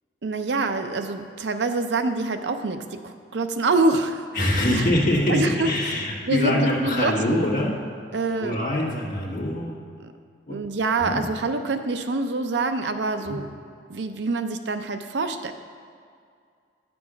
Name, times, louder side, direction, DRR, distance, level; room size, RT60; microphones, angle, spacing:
voice 1, 0.2-4.8 5.3-5.7 6.3-7.4 8.1-8.7 10.0-10.1 10.5-13.5 13.9-15.5, right 3 dB, 75° right, 8 dB, 0.6 m, -26 dB
voice 2, 4.3-7.7 8.4-9.7 10.5-10.6 11.0-11.2 13.3-13.4, left 1 dB, 50° left, -5 dB, 1.5 m, -24 dB
9.6 x 6.1 x 5.0 m, 2.2 s
head